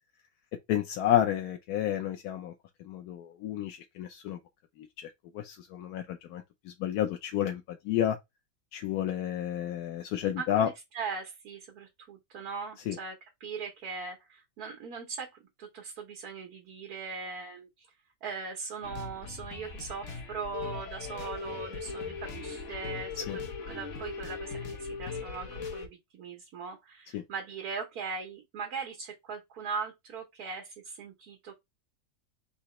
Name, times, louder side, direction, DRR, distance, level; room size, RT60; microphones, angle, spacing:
voice 1, 0.7-2.5 2.8-4.4 4.8-5.1 5.3-8.2 8.7-10.7 12.9-13.0 23.3-23.4 27.1-27.2, left 11 dB, 90° left, 1.1 m, -31 dB
voice 2, 10.4-15.3 15.6-17.9 18.2-31.5, right 5 dB, 85° right, 1.5 m, -40 dB
sound 1, 18.8-25.9, left 4 dB, 55° left, 1.3 m, -39 dB
4.0 x 2.9 x 4.2 m
omnidirectional pair, 1.6 m